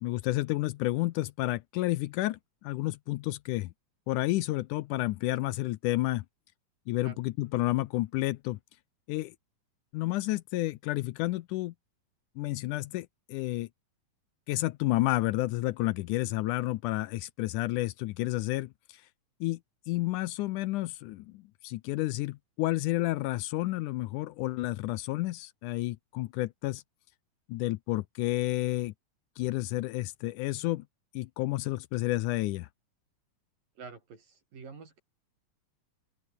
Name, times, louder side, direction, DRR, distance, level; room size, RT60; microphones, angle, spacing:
voice 1, 0.0-3.7 4.1-6.2 6.9-8.6 9.1-9.3 9.9-11.7 12.4-13.7 14.5-18.7 19.4-19.6 19.9-26.8 27.5-28.9 29.4-30.8 31.2-32.7, left 18 dB, 80° left, 2.0 m, -30 dB
voice 2, 33.8-35.0, right 5 dB, 80° right, 6.9 m, -47 dB
open air
omnidirectional pair, 3.9 m